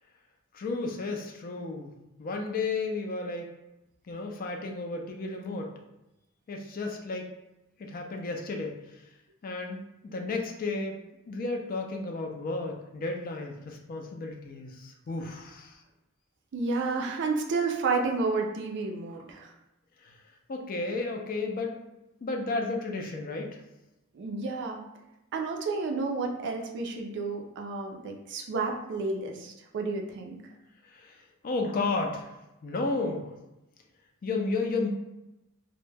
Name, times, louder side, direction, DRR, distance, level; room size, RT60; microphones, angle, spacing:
voice 1, 0.5-1.9 2.2-3.5 4.1-5.7 6.5-7.3 7.8-8.8 9.4-9.8 10.1-11.0 11.3-15.8 20.0-20.2 20.5-21.8 22.2-23.6 30.9-32.3 32.6-33.3 34.2-34.9, left 3 dB, 40° left, 2 dB, 0.3 m, -33 dB
voice 2, 16.5-19.5 24.2-24.8 25.3-30.4, right 4 dB, 55° right, 3 dB, 0.4 m, -31 dB
2.1 x 2.0 x 3.2 m, 0.94 s
head